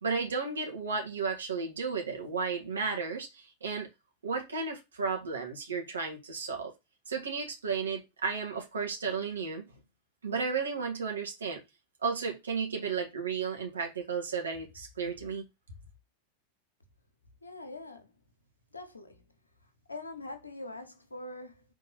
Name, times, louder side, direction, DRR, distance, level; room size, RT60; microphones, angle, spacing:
voice 1, 0.0-3.9 4.2-6.7 7.1-9.6 10.2-11.6 12.0-15.5, right 5 dB, 70° right, 1.7 m, -33 dB
voice 2, 17.4-18.1 18.7-19.2 19.9-21.6, left 2 dB, 80° left, 1.3 m, -43 dB
5.1 x 3.7 x 5.7 m
figure-of-eight pair, 90°, 0 cm